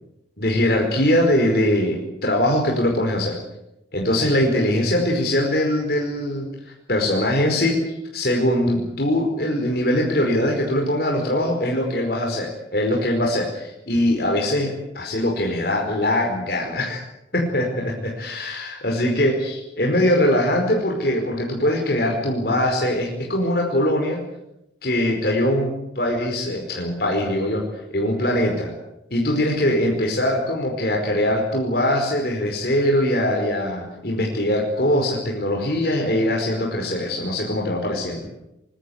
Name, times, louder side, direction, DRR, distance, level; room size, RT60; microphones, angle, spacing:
voice 1, 0.4-3.4 3.9-6.5 6.9-7.8 8.1-17.0 17.3-24.2 24.8-27.6 27.9-28.7 29.1-38.3, left 1 dB, 55° left, 0 dB, 5.0 m, -22 dB
24.5 x 21.0 x 8.1 m, 0.85 s
head